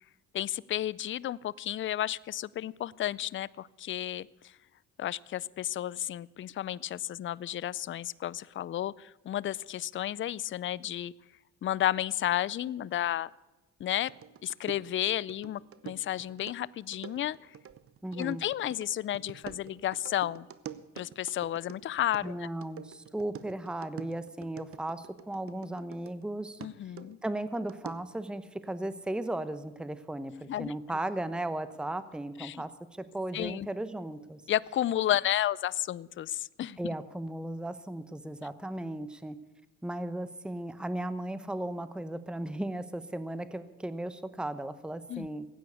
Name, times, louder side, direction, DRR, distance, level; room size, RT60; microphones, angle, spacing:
voice 1, 0.3-4.5 5.0-11.1 11.6-13.3 13.8-14.1 14.4-17.6 18.1-20.5 21.0-22.5 26.6-27.2 30.5-30.7 32.4-32.6 33.3-33.7 34.5-36.8 45.1-45.3, left 12 dB, 40° left, 21 dB, 0.4 m, -32 dB
sound 1, 14.1-26.3 26.6-28.2, right 9 dB, 45° right, 0.8 m, -47 dB
voice 2, 18.0-18.4 22.2-26.6 27.2-34.4 36.8-39.4 39.8-45.5, right 1 dB, 5° right, 13 dB, 0.8 m, -36 dB
15.5 x 9.2 x 8.4 m, 1.1 s
cardioid pair, 90°, 30 cm